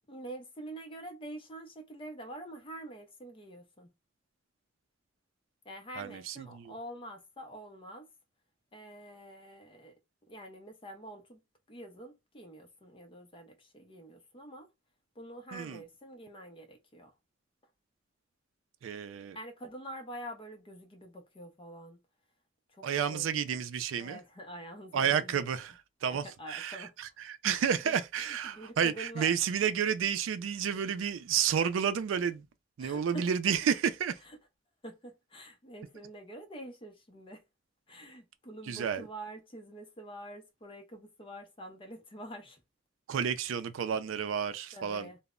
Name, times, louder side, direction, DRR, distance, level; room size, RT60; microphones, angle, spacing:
voice 1, 0.1-3.9 5.6-8.1 8.7-9.9 10.3-11.4 11.7-14.7 15.2-17.1 19.3-22.0 22.7-23.3 24.0-25.4 26.1-26.9 27.5-29.3 32.8-33.3 34.2-34.4 34.8-37.4 37.9-42.6 44.7-45.2, right 1 dB, 30° left, 0.6 m, -46 dB
voice 2, 6.0-6.7 15.5-15.8 18.8-19.4 22.8-24.2 24.9-32.4 32.8-34.2 38.7-39.0 43.1-45.1, right 8 dB, 80° right, 0.4 m, -31 dB
2.0 x 2.0 x 3.5 m
head